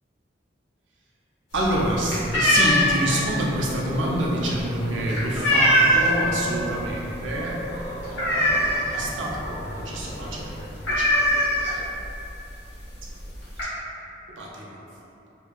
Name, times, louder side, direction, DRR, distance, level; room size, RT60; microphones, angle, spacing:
sound 1, 1.5-6.3 6.6-7.0 7.2-7.3 7.7-9.1 9.4-9.5 9.8-10.0 10.3-10.4 10.8-12.1 12.8-12.9 13.2-13.6, equal, 80° left, 0.8 m, -21 dB
voice 1, 1.5-7.6 8.0-11.8 13.6-13.7 14.3-14.9, right 1 dB, 85° right, -3 dB, 0.5 m, -28 dB
sound 2, 2.6-10.6, equal, 20° left, 0.9 m, -36 dB
2.7 x 2.6 x 2.4 m, 2.7 s
head